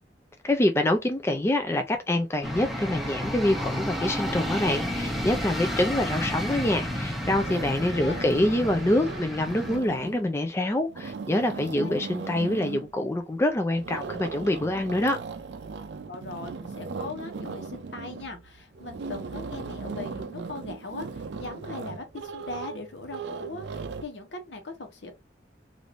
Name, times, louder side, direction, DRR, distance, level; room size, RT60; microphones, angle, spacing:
voice 1, 0.4-15.2, left 1 dB, 15° left, 0.4 m, -26 dB
sound 1, 2.4-9.8, equal, ahead, 0.8 m, -31 dB
sound 2, 7.3-10.3 10.8-12.9 13.8-24.1, right 4 dB, 70° right, 0.4 m, -38 dB
voice 2, 16.1-25.1, left 2 dB, 75° left, 1.0 m, -39 dB
3.4 x 2.5 x 2.5 m
head